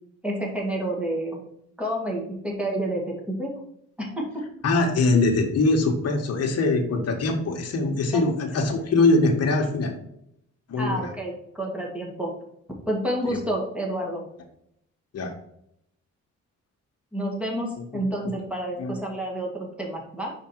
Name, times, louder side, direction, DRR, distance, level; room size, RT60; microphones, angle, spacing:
voice 1, 0.2-1.4 1.8-3.6 4.0-4.4 10.8-12.3 12.9-14.3 17.1-20.3, right 1 dB, 5° right, -1 dB, 2.1 m, -29 dB
voice 2, 4.6-9.9 10.7-11.1 13.3-13.4 15.1-15.3 18.8-18.9, left 3 dB, 55° left, 3 dB, 1.5 m, -22 dB
5.1 x 4.9 x 4.6 m, 0.73 s
cardioid pair, 90°, 30 cm